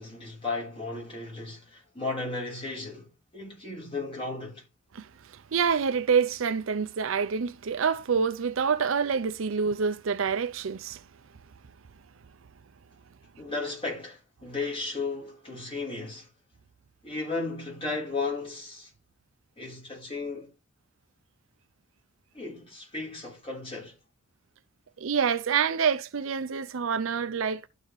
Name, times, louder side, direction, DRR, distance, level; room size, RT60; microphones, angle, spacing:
voice 1, 0.0-4.6 13.4-16.3 17.0-18.9 19.6-20.5 22.3-24.0, left 3 dB, 30° left, 3.6 m, -35 dB
voice 2, 5.5-11.0 25.0-27.7, right 6 dB, 70° right, 0.5 m, -27 dB
12.5 x 4.2 x 3.1 m
head